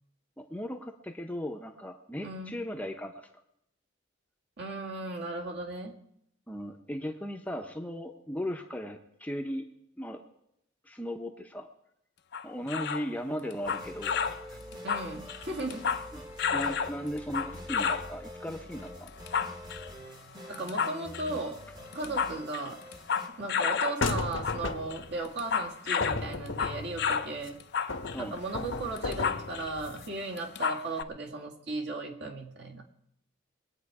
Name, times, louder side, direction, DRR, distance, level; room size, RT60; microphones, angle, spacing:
voice 1, 0.4-3.3 6.5-9.7 10.0-10.2 10.8-11.7 12.4-14.1 14.5-14.6 16.1-16.2 16.5-19.1 22.0-22.2 28.1-28.4, equal, 5° left, 4 dB, 0.7 m, -37 dB
voice 2, 2.2-2.6 4.6-6.0 6.6-6.7 12.7-13.5 14.8-15.9 20.5-21.6 21.9-22.8 23.3-27.6 28.2-32.9, right 2 dB, 55° right, 0 dB, 2.1 m, -36 dB
sound 1, 12.3-13.1 13.5-14.4 14.7-16.1 16.4-18.1 19.1-19.9 20.5-21.3 21.9-24.0 24.3-24.6 24.9-27.3 27.6-29.7 30.0-30.1 30.4-31.0, left 6 dB, 55° left, 0.6 m, -31 dB
sound 2, 13.6-23.3, equal, 20° right, 1.3 m, -46 dB
sound 3, 24.0-25.2 26.0-27.5 27.9-30.1, left 3 dB, 70° left, 1.0 m, -35 dB
22.0 x 8.9 x 4.8 m, 0.78 s
head